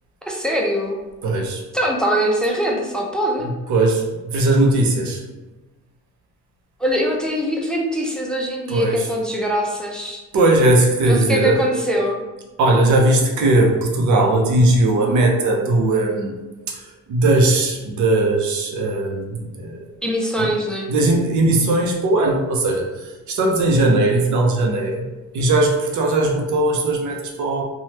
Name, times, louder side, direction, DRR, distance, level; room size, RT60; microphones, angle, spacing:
voice 1, 0.2-1.0 1.7-3.5 6.8-10.2 11.1-12.2 20.0-20.9, equal, 5° left, -2 dB, 0.5 m, -22 dB
voice 2, 1.2-1.6 3.7-5.2 8.7-9.0 10.3-11.6 12.6-16.3 16.7-16.8 17.1-19.9 20.4-20.5 20.9-25.1 25.3-27.6, right 2 dB, 75° right, 1 dB, 0.7 m, -18 dB
3.2 x 2.3 x 2.8 m, 1.1 s
cardioid pair, 90°, 30 cm